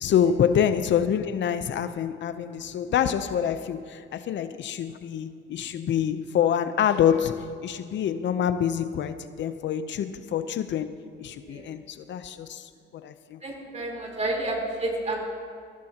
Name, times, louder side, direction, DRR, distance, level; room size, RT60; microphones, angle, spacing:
voice 1, 0.0-13.4, left 9 dB, 65° left, 11 dB, 0.7 m, -26 dB
voice 2, 13.4-15.2, right 2 dB, 35° right, -1 dB, 3.9 m, -30 dB
21.5 x 15.5 x 2.9 m, 2.3 s
cardioid pair, 90°, 20 cm